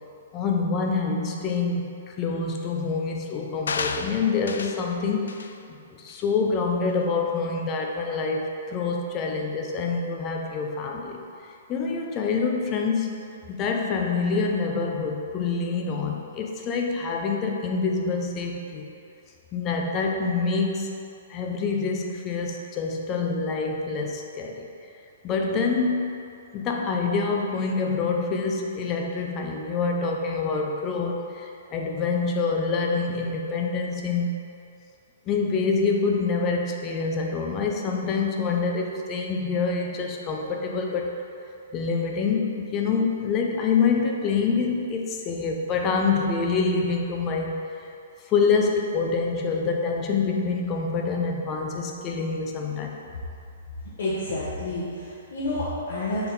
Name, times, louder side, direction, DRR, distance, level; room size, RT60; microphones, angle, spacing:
voice 1, 0.3-5.4 5.7-11.2 11.7-13.2 13.5-18.9 19.5-20.9 21.3-24.7 25.2-26.2 26.5-34.3 35.3-41.1 41.7-47.6 48.3-53.0, left 4 dB, 20° left, 1 dB, 0.5 m, -26 dB
sound 1, 3.7-4.9 5.3-5.5 6.1-6.2, left 5 dB, 90° left, 0.3 m, -32 dB
voice 2, 54.0-56.3, left 1 dB, 65° left, -8 dB, 1.1 m, -29 dB
6.7 x 3.6 x 3.9 m, 2.6 s
hypercardioid pair, 160°, 0 cm